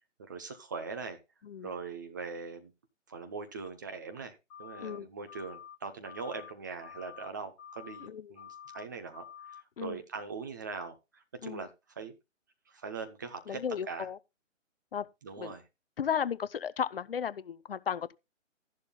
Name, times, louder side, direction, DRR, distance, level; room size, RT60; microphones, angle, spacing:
voice 1, 0.2-1.2 1.6-2.7 3.1-12.1 12.7-14.1 15.2-15.6, right 4 dB, 15° right, 0.6 m, -41 dB
sound 1, 4.5-5.0 5.3-5.7 6.0-6.5 6.8-7.3 7.6-8.1 8.3-8.8 9.1-9.6, left 9 dB, 30° left, 2.7 m, -48 dB
voice 2, 4.8-5.1 8.0-8.3 9.8-10.0 11.4-11.6 13.5-14.2 14.9-15.1 15.4-15.5 16.0-18.1, left 8 dB, 50° left, 0.7 m, -34 dB
13.5 x 11.0 x 2.2 m
hypercardioid pair, 150°, 38 cm